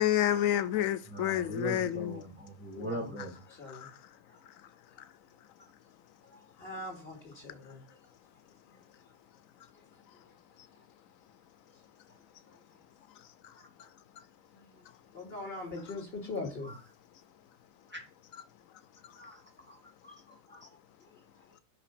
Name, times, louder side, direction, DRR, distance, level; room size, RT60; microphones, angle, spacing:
voice 1, 0.0-2.2 3.7-4.0 5.0-5.1 13.2-13.5 13.8-13.9 19.0-19.2, left 12 dB, 90° left, 1.0 m, -30 dB
voice 2, 1.1-3.4 13.6-13.7 17.9-18.0 19.2-19.4 19.7-20.7, equal, 10° right, 2.3 m, -41 dB
voice 3, 2.7-3.9 4.3-4.4 6.2-7.8 8.6-8.8 9.0-9.1 9.7-9.8 10.2-10.3 11.7-11.8 12.5-12.6 13.8-13.9 14.5-14.8 15.1-16.7 20.5-21.4, left 2 dB, 45° left, 3.1 m, -43 dB
5.9 x 5.7 x 6.7 m
omnidirectional pair, 1.4 m